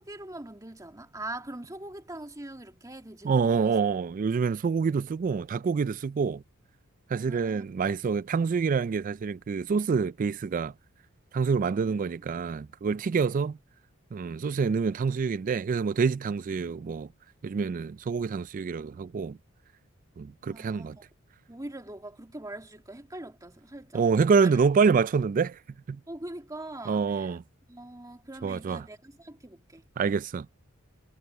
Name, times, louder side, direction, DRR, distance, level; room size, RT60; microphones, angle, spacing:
voice 1, 0.0-3.7 7.2-7.6 11.7-12.0 20.5-21.0 21.5-24.0 24.4-24.5 26.1-27.4 27.7-29.9, right 1 dB, 15° right, 2.2 m, -42 dB
voice 2, 3.2-6.4 7.1-10.7 11.3-13.6 14.1-17.1 17.4-19.4 20.2-21.0 23.9-25.6 25.9-26.0 26.9-27.4 28.4-28.8 30.0-30.5, right 5 dB, 40° right, 0.3 m, -26 dB
head